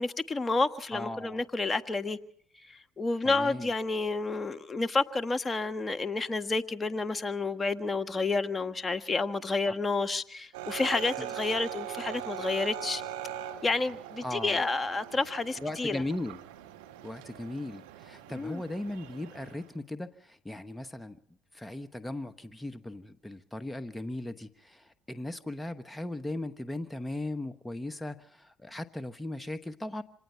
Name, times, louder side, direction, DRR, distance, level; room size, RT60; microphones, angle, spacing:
voice 1, 0.0-2.2 2.6-13.0 13.6-16.0 18.3-18.6, left 3 dB, 25° left, 1.6 m, -30 dB
voice 2, 0.9-1.4 3.2-3.7 11.2-11.3 14.2-14.6 15.6-16.4 17.0-21.2 21.5-30.0, left 1 dB, 10° left, 1.2 m, -38 dB
sound 1, 10.5-19.7, right 10 dB, 85° right, 1.6 m, -41 dB
26.0 x 18.5 x 5.7 m
hypercardioid pair, 65°, 0 cm